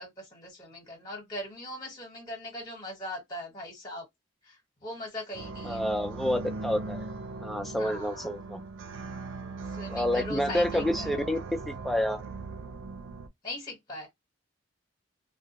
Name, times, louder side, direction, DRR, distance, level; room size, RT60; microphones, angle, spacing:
voice 1, 0.0-4.0 4.4-5.8 7.7-8.3 9.7-11.3 13.4-14.1, left 1 dB, 20° left, 1.1 m, -40 dB
sound 1, 5.3-13.3, right 3 dB, 90° right, 0.5 m, -39 dB
voice 2, 5.6-7.1 7.4-8.6 9.9-12.2, left 1 dB, ahead, 0.4 m, -29 dB
2.3 x 2.1 x 2.8 m
head